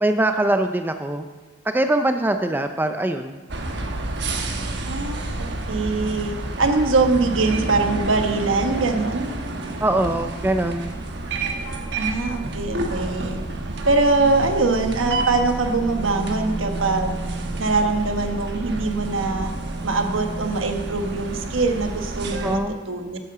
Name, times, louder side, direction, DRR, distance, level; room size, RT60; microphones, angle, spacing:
voice 1, 0.0-1.2 1.7-3.4 9.8-10.9 22.4-22.8, right 1 dB, 10° right, 7 dB, 0.4 m, -22 dB
sound 1, 3.5-22.6, right 2 dB, 55° right, 1.1 m, -29 dB
voice 2, 4.8-9.3 12.0-13.4 13.8-19.5 19.8-22.6 22.9-23.2, right 3 dB, 75° right, 5 dB, 1.2 m, -23 dB
8.5 x 8.4 x 6.7 m, 1.3 s
head